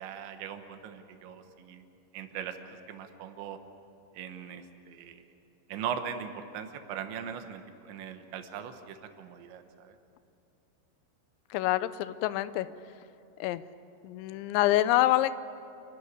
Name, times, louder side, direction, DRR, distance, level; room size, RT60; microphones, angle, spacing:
voice 1, 0.0-1.8 2.1-3.6 4.1-5.2 5.7-10.0, right 8 dB, 80° right, 7 dB, 3.4 m, -40 dB
voice 2, 11.5-12.7 13.4-13.6 14.0-15.3, left 15 dB, 85° left, 15 dB, 3.0 m, -26 dB
27.5 x 12.0 x 9.6 m, 2.8 s
omnidirectional pair, 5.2 m